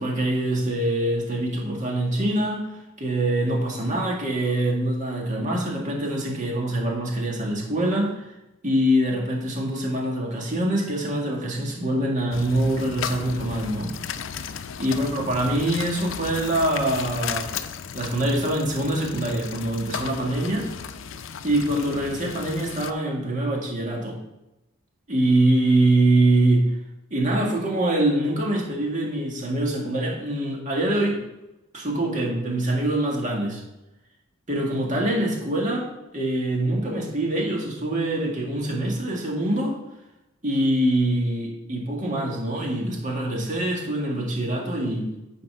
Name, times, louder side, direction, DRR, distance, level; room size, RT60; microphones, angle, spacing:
voice 1, 0.0-8.3 8.6-13.9 14.8-17.5 17.9-20.7 21.4-24.2 25.1-26.7 27.1-31.2 31.7-33.6 34.5-39.8 40.4-45.1, right 1 dB, 40° right, -1 dB, 1.9 m, -24 dB
sound 1, 12.3-22.9, left 7 dB, 70° left, 0.5 m, -35 dB
9.5 x 4.3 x 5.6 m, 0.94 s
head